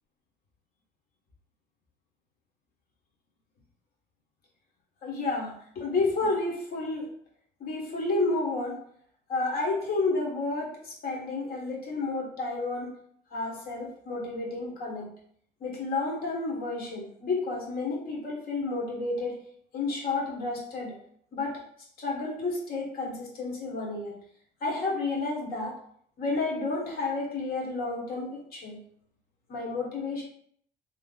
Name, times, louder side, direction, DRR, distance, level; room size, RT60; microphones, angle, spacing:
voice 1, 5.0-7.1 7.6-8.8 9.3-12.9 13.3-15.1 15.6-19.4 19.7-20.9 21.3-21.6 22.0-24.1 24.6-25.7 26.2-28.8 29.5-30.2, left 3 dB, 60° left, -2 dB, 1.6 m, -31 dB
3.2 x 2.9 x 4.0 m, 0.64 s
cardioid pair, 110°, 17 cm